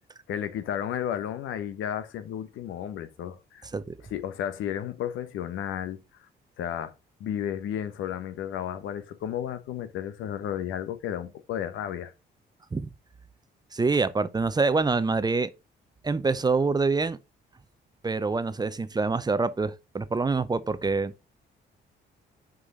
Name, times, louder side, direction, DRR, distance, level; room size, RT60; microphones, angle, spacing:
voice 1, 0.3-3.7 4.1-6.0 6.6-6.9 7.2-12.1, left 10 dB, 85° left, 0.9 m, -33 dB
voice 2, 13.7-15.5 16.0-17.2 18.0-21.2, right 4 dB, 20° right, 0.6 m, -26 dB
6.4 x 4.9 x 3.7 m
cardioid pair, 90°, 20 cm